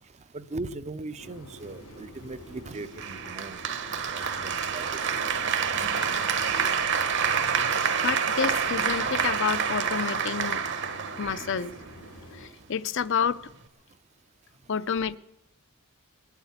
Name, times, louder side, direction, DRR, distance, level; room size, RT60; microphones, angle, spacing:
voice 1, 0.0-3.6 3.9-5.3 11.4-11.5, right 2 dB, 30° right, 0.5 m, -39 dB
sound 1, 1.2-12.5, equal, 80° left, 2.7 m, -45 dB
Applause, 3.0-12.0, right 6 dB, 55° right, 1.0 m, -28 dB
voice 2, 8.0-10.6 11.2-11.7 12.3-13.4 14.7-15.2, left 6 dB, 55° left, 0.5 m, -29 dB
20.0 x 8.2 x 8.1 m
head